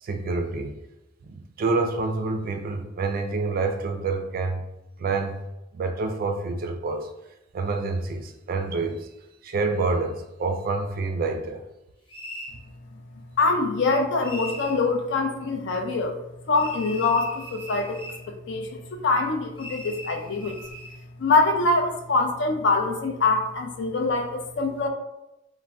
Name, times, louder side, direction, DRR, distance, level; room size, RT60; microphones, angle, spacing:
voice 1, 0.0-0.8 1.3-4.6 5.0-5.4 5.7-7.1 7.5-9.1 9.4-11.6, right 3 dB, 50° right, 6 dB, 0.3 m, -27 dB
sound 1, 12.1-12.6 14.2-14.8 16.5-18.2 19.6-21.0, equal, 25° left, 0.8 m, -39 dB
voice 2, 13.4-16.1 16.5-18.0 18.5-20.6 21.2-24.9, left 3 dB, 65° left, 4 dB, 0.4 m, -24 dB
2.4 x 2.0 x 3.3 m, 0.92 s
head